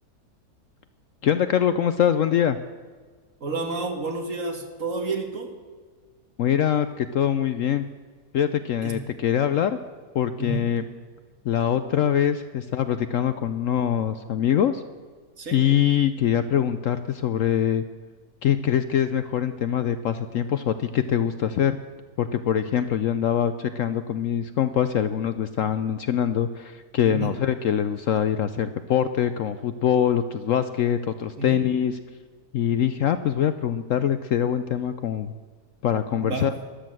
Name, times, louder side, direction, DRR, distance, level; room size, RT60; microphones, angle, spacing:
voice 1, 1.2-2.6 6.4-7.8 8.3-9.8 10.1-10.8 11.4-14.8 15.5-17.8 18.4-21.8 22.2-32.0 32.5-35.3 35.8-36.5, left 9 dB, 65° left, 11 dB, 0.8 m, -23 dB
voice 2, 3.4-5.6 8.8-9.0 10.4-10.7 15.4-15.6 27.1-27.3 31.4-31.6 36.1-36.5, right 3 dB, 50° right, 5 dB, 2.0 m, -30 dB
13.0 x 11.5 x 7.6 m, 1.5 s
omnidirectional pair, 1.7 m